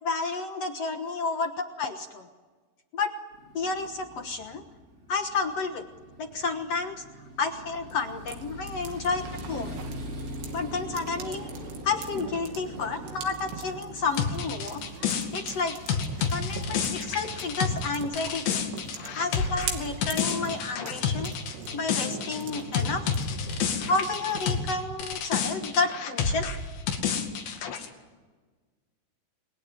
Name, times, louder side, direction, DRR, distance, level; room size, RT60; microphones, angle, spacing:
voice 1, 0.0-2.2 2.9-3.1 3.5-4.6 5.1-5.8 6.2-7.0 7.4-9.2 9.5-9.8 10.5-11.5 11.8-14.8 15.3-16.0 16.3-18.7 19.2-21.3 21.7-23.1 23.8-26.5, left 4 dB, 70° left, 5 dB, 1.5 m, -30 dB
Motorcycle, 3.3-19.1, equal, 45° right, 5.7 m, -43 dB
sound 1, 7.9-24.7, right 6 dB, 75° right, 4.6 m, -42 dB
sound 2, 14.2-24.8 25.0-27.9, left 6 dB, 85° left, 4.6 m, -29 dB
28.5 x 21.5 x 9.4 m, 1.4 s
omnidirectional pair, 5.0 m